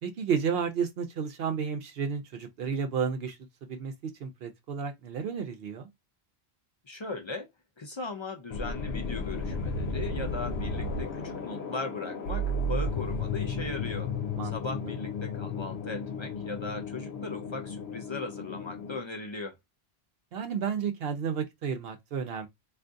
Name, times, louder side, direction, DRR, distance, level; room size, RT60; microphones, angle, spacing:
voice 1, 0.0-3.4 3.7-5.9 14.4-14.5 20.3-22.5, right 6 dB, 70° right, 0.8 m, -32 dB
voice 2, 6.9-7.5 7.8-14.1 14.5-19.5, left 3 dB, 40° left, 0.4 m, -38 dB
sound 1, 8.5-19.0, left 2 dB, 80° left, 0.9 m, -33 dB
3.5 x 2.4 x 2.5 m
omnidirectional pair, 1.1 m